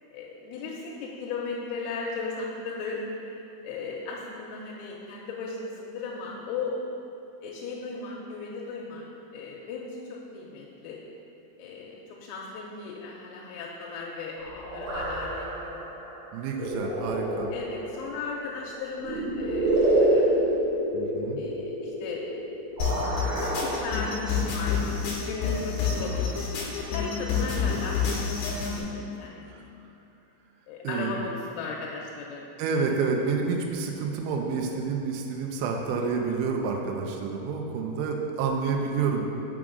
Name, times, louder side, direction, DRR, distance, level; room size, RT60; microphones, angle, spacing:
voice 1, 0.1-6.8 7.4-9.1 9.3-11.0 11.6-15.9 17.0-17.2 17.5-20.4 21.4-22.2 23.4-29.5 30.7-32.4, left 4 dB, 90° left, -3 dB, 3.4 m, -37 dB
sound 1, 14.4-24.5, right 1 dB, 65° right, 2.1 m, -28 dB
voice 2, 16.3-17.5 20.9-21.4 29.5-29.6 30.8-31.2 32.6-39.2, right 5 dB, 85° right, 1 dB, 2.7 m, -29 dB
sound 2, 22.8-28.8, left 6 dB, 75° left, 2.8 m, -28 dB
6.1 x 5.9 x 3.7 m, 2.8 s
omnidirectional pair, 6.0 m